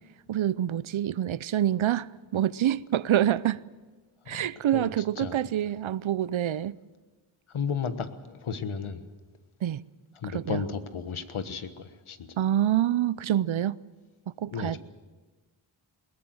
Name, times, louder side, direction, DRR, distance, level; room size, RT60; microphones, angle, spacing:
voice 1, 0.3-3.6 4.3-6.8 9.6-9.8 10.3-10.6 12.4-13.8 14.4-14.8, right 11 dB, 75° right, 0.7 m, -26 dB
voice 2, 4.7-5.4 7.5-9.0 10.1-12.3 14.5-14.8, left 6 dB, 90° left, 1.4 m, -34 dB
21.0 x 18.5 x 7.8 m
wide cardioid pair, 105°, 48 cm